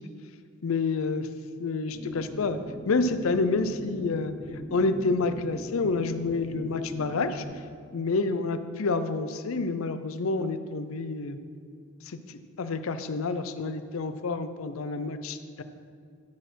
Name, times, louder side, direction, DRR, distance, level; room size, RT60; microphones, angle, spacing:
voice 1, 0.6-1.3 1.6-2.6 2.9-4.3 4.7-7.4 7.9-11.4 12.1-15.6, left 3 dB, 75° left, 10 dB, 0.5 m, -28 dB
sound 1, 1.9-7.4, equal, 35° left, 2.0 m, -41 dB
10.5 x 4.3 x 6.1 m, 2.2 s
head